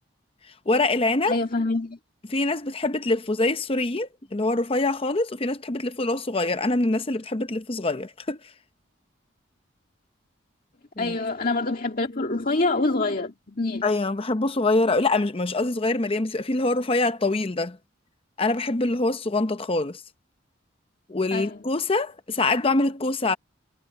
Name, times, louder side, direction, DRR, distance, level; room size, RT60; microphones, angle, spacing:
voice 1, 0.7-1.4 2.3-8.4 11.0-11.2 13.8-17.8 18.4-20.0 21.1-23.4, left 2 dB, 30° left, 0.7 m, -24 dB
voice 2, 1.3-2.0 11.0-13.9 21.3-21.6, left 2 dB, 45° left, 2.0 m, -26 dB
head